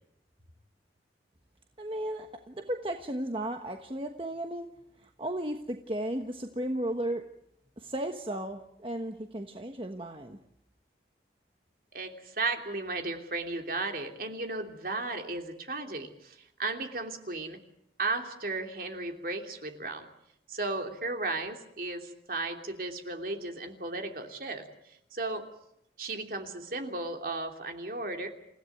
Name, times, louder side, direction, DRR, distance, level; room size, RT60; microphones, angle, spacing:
voice 1, 1.8-4.7 5.0-7.2 7.8-10.4, right 1 dB, 30° right, 5 dB, 1.3 m, -35 dB
voice 2, 11.9-17.6 18.0-20.0 20.5-25.4 26.0-28.3, right 3 dB, 50° right, 4 dB, 3.0 m, -35 dB
28.5 x 16.5 x 9.2 m, 0.77 s
head